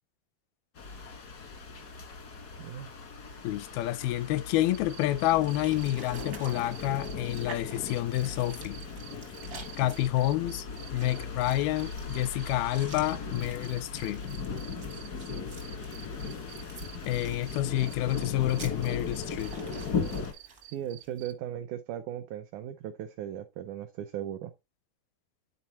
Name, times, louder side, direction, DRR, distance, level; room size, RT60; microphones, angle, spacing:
sound 1, 0.7-20.3, left 5 dB, 65° left, 0.9 m, -38 dB
voice 1, 2.6-2.9 20.7-24.5, right 10 dB, 90° right, 1.7 m, -37 dB
voice 2, 3.4-8.8 9.8-10.7 10.9-14.2 17.1-19.6, left 14 dB, 85° left, 2.5 m, -29 dB
sound 2, 4.7-7.4 7.9-21.3, right 15 dB, 75° right, 1.8 m, -49 dB
sound 3, 5.3-21.3, right 4 dB, 55° right, 0.9 m, -50 dB
11.0 x 4.2 x 2.9 m
omnidirectional pair, 4.2 m